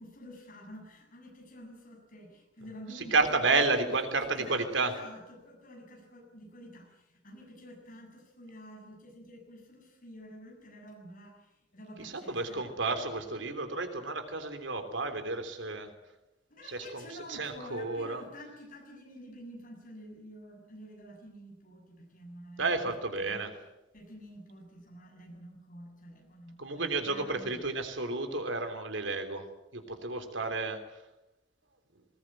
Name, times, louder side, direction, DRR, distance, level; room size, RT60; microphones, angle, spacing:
voice 1, 0.0-12.6 16.5-23.4 23.9-27.6, equal, 45° left, 2 dB, 7.4 m, -49 dB
voice 2, 2.9-4.9 12.0-15.9 16.6-17.0 17.3-18.2 22.6-23.5 26.6-29.5 29.7-30.8, right 3 dB, 80° right, 7 dB, 3.3 m, -31 dB
20.5 x 19.5 x 9.1 m, 0.97 s
head